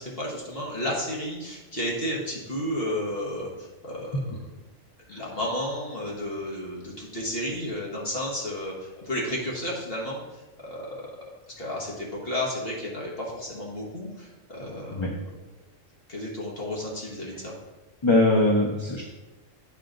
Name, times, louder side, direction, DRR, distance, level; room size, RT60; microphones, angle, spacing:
voice 1, 0.0-4.4 5.1-11.1 11.6-15.1 16.1-17.5, left 1 dB, 45° left, -4 dB, 1.6 m, -32 dB
voice 2, 18.0-19.0, left 2 dB, 30° left, -1 dB, 0.6 m, -21 dB
8.3 x 5.7 x 3.8 m, 1.1 s
omnidirectional pair, 1.4 m